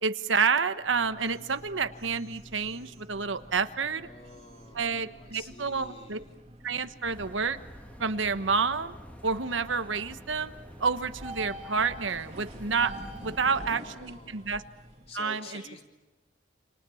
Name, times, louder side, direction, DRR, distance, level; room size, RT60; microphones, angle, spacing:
voice 1, 0.0-4.1 4.7-6.2 6.6-7.6 8.0-9.0 9.2-10.5 10.8-12.9 13.2-14.6 15.1-15.6, right 5 dB, 85° right, 10 dB, 1.2 m, -29 dB
sound 1, 0.7-15.2, right 1 dB, 30° right, 2.8 m, -48 dB
voice 2, 3.8-6.4 13.4-14.5 15.1-15.8, left 2 dB, 30° left, 3 dB, 3.3 m, -49 dB
sound 2, 7.0-13.6, equal, 10° left, 2.6 m, -49 dB
29.0 x 27.0 x 7.1 m, 1.2 s
head